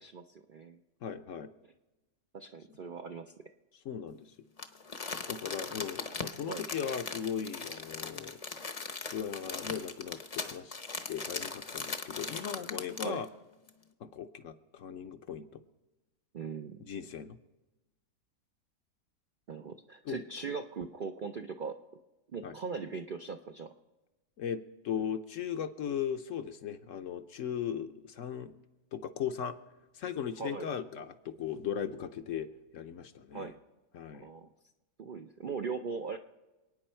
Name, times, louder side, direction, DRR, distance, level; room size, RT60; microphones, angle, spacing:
voice 1, 1.0-1.5 3.8-4.3 4.9-8.4 9.0-10.7 11.1-13.3 14.0-15.6 16.8-17.4 20.0-20.2 22.4-22.6 24.4-28.5 28.9-29.6 29.9-32.5 32.7-33.5 33.9-34.3, left 8 dB, 60° left, 9 dB, 1.0 m, -38 dB
voice 2, 2.3-3.3 6.5-6.7 7.7-7.8 13.0-13.2 16.3-16.8 19.5-21.7 22.3-23.7 30.4-30.7 33.3-33.5 34.1-34.5 35.0-36.2, right 5 dB, 55° right, 5 dB, 0.5 m, -39 dB
Crumpling crinkling, 4.6-13.2 13.7-13.8, left 4 dB, 35° left, 0.7 m, -39 dB
27.5 x 9.3 x 4.4 m, 1.1 s
omnidirectional pair, 1.6 m